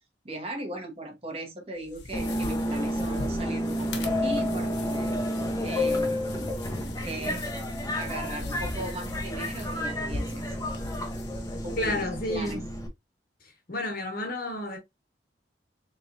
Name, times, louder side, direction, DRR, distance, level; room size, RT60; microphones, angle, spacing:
voice 1, 0.2-5.3 5.6-6.2 7.0-7.6 7.9-10.7 11.6-12.6, right 1 dB, 35° right, 1.1 m, -38 dB
sound 1, 1.8-12.0, left 3 dB, 75° left, 0.9 m, -41 dB
Subway metro underground, 2.1-12.9, left 1 dB, 20° left, 0.8 m, -30 dB
voice 2, 11.8-12.7 13.7-14.8, left 1 dB, 55° left, 1.4 m, -31 dB
4.2 x 3.3 x 2.5 m
head